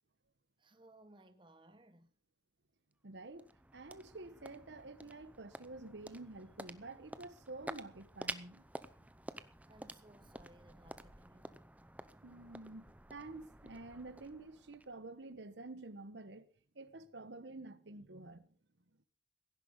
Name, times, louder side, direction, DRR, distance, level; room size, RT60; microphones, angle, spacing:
voice 1, 0.6-2.1 9.7-11.7, right 1 dB, 25° right, 1.2 m, -62 dB
sound 1, 2.9-15.3, right 1 dB, 10° right, 0.7 m, -51 dB
voice 2, 3.0-8.6 12.2-16.5 16.7-18.5, right 2 dB, 75° right, 1.1 m, -49 dB
16.5 x 10.5 x 5.3 m
head